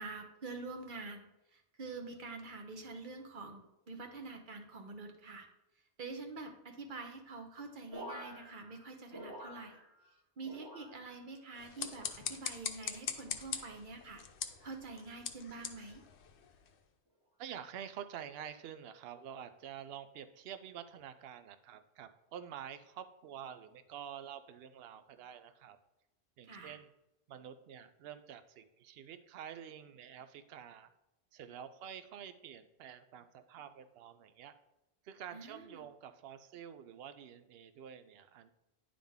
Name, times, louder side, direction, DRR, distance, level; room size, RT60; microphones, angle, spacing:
voice 1, 0.0-5.5 6.0-9.8 10.4-14.2 14.6-16.0 26.5-26.7 35.3-35.9, right 3 dB, 50° right, 5 dB, 1.0 m, -46 dB
sound 1, 7.9-10.1 10.4-11.3 11.8-12.5 13.1-13.5 14.4-14.8 15.7-16.0, equal, 20° right, 1.3 m, -50 dB
sound 2, 11.5-16.8, left 8 dB, 80° left, 0.9 m, -43 dB
voice 2, 17.4-25.8 26.4-26.9 27.3-30.9 31.3-34.6 35.0-38.5, right 9 dB, 70° right, 11 dB, 0.8 m, -48 dB
10.0 x 3.8 x 3.6 m, 0.92 s
omnidirectional pair, 1.1 m